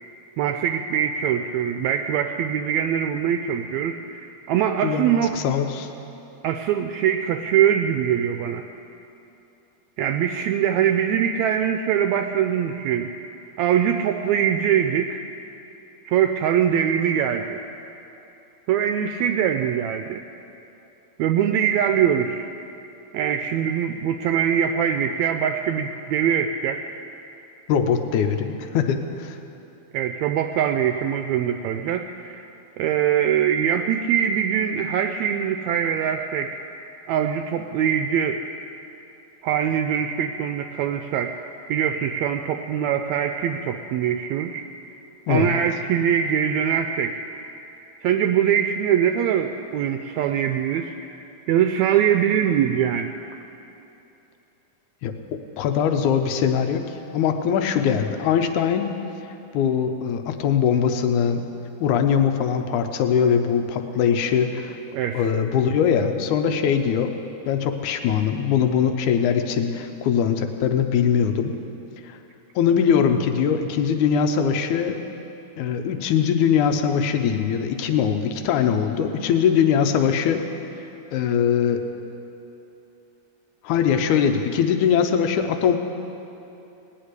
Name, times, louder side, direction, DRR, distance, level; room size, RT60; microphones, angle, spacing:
voice 1, 0.4-5.4 6.4-8.7 10.0-13.1 13.6-15.3 16.0-17.6 18.7-20.2 21.2-22.5 23.1-26.8 29.9-32.5 32.8-36.6 37.1-38.4 39.4-41.3 41.7-44.7 45.3-47.2 48.0-53.1 64.9-65.3, right 9 dB, 80° right, 6 dB, 1.7 m, -23 dB
voice 2, 4.8-5.9 27.7-29.4 45.3-45.5 55.0-58.9 59.5-61.4 61.8-64.8 65.1-67.1 67.5-71.6 72.0-72.2 72.6-75.0 75.6-80.4 81.1-81.8 83.6-85.8, left 7 dB, 85° left, 6 dB, 2.2 m, -21 dB
18.0 x 6.7 x 9.6 m, 2.8 s
omnidirectional pair, 3.5 m